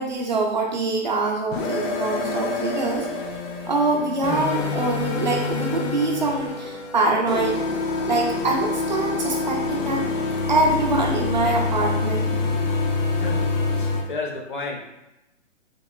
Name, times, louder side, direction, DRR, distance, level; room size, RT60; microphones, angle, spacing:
voice 1, 0.0-3.1 3.7-7.6 8.1-10.0 10.5-12.3, right 2 dB, 40° right, -1 dB, 0.4 m, -24 dB
sound 1, 1.5-14.0, left 3 dB, 85° left, 0.7 m, -26 dB
voice 2, 13.1-14.8, left 3 dB, 45° left, 0 dB, 0.5 m, -32 dB
2.9 x 2.7 x 2.3 m, 0.92 s
hypercardioid pair, 175°, 37 cm